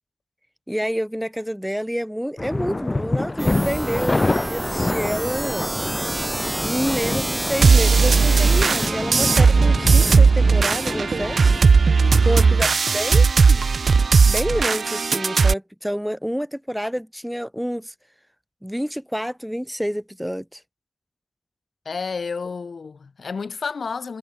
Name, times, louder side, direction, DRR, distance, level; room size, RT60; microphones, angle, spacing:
voice 1, 0.7-5.7 6.6-11.5 12.2-12.7 12.9-13.6 14.3-17.9 18.6-20.6, equal, ahead, 0.3 m, -28 dB
sound 1, 2.4-12.0, left 2 dB, 35° left, 0.8 m, -27 dB
sound 2, 3.4-8.9, right 1 dB, 25° right, 1.0 m, -28 dB
sound 3, 7.6-15.5, right 5 dB, 70° right, 0.4 m, -16 dB
voice 2, 11.9-12.8 21.8-24.2, left 5 dB, 70° left, 0.9 m, -31 dB
cardioid pair, 55°, 0 cm